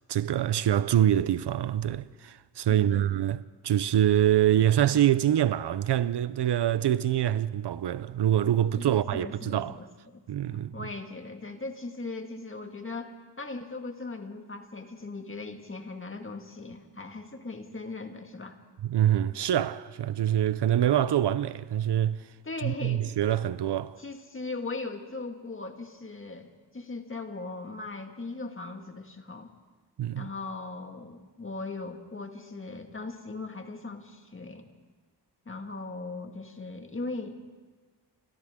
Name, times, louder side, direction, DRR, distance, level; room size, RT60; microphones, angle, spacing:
voice 1, 0.1-9.7 10.3-10.9 18.8-22.2 22.6-24.0 30.0-30.3, right 11 dB, 70° right, 0.6 m, -25 dB
voice 2, 2.7-3.0 8.7-10.2 10.5-13.1 13.4-18.6 22.4-23.1 24.0-29.5 30.1-34.7 35.4-37.4, left 3 dB, 30° left, 1.8 m, -39 dB
29.0 x 25.5 x 3.7 m
wide cardioid pair, 135°, 42 cm